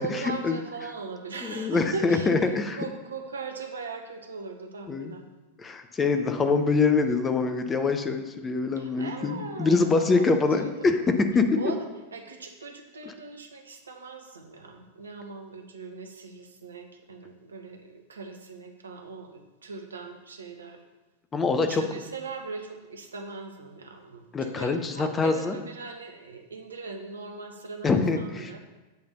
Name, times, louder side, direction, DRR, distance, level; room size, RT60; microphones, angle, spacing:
voice 1, 0.0-5.2 8.8-10.9 11.5-20.8 21.5-28.6, right 4 dB, 70° right, 4 dB, 0.8 m, -40 dB
voice 2, 1.4-2.8 4.9-5.1 5.6-11.5 21.3-21.8 24.3-25.5 27.8-28.5, left 4 dB, 20° left, 7 dB, 0.6 m, -24 dB
7.9 x 3.4 x 6.5 m, 1.1 s
figure-of-eight pair, 90°, 0 cm